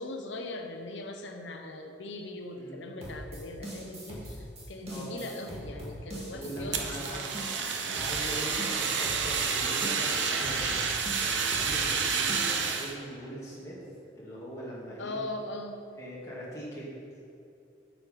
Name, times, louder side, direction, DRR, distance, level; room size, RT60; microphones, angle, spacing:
voice 1, 0.0-7.3 15.0-15.8, left 2 dB, 80° left, 4 dB, 1.0 m, -40 dB
sound 1, 3.0-12.9, right 1 dB, 35° right, 2.2 m, -42 dB
voice 2, 6.3-7.2 8.0-10.8 11.2-13.9 14.2-15.2 16.0-17.0, right 1 dB, 15° left, -8 dB, 2.0 m, -41 dB
Fire, 6.7-12.9, right 5 dB, 85° right, 0.9 m, -29 dB
9.3 x 7.6 x 5.1 m, 2.6 s
head